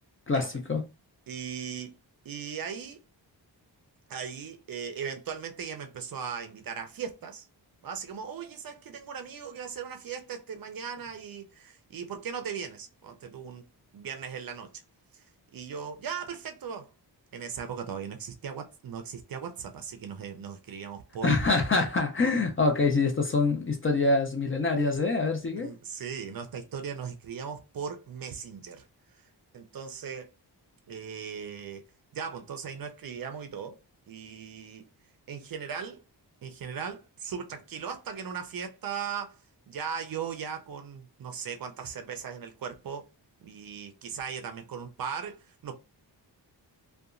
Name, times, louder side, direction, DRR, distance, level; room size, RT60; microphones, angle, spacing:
voice 1, 0.3-0.8 21.2-25.7, left 3 dB, 30° left, 0.4 m, -25 dB
voice 2, 1.3-2.0 2.2-3.0 4.1-7.5 7.8-13.6 13.9-14.7 15.1-15.2 15.5-16.9 17.3-21.3 25.6-28.9 29.5-30.3 30.9-31.8 32.1-33.8 34.1-34.9 35.3-36.0 36.4-39.4 39.7-43.1 43.4-45.7, right 7 dB, 55° right, 0.5 m, -38 dB
2.8 x 2.2 x 2.4 m
wide cardioid pair, 175°, 43 cm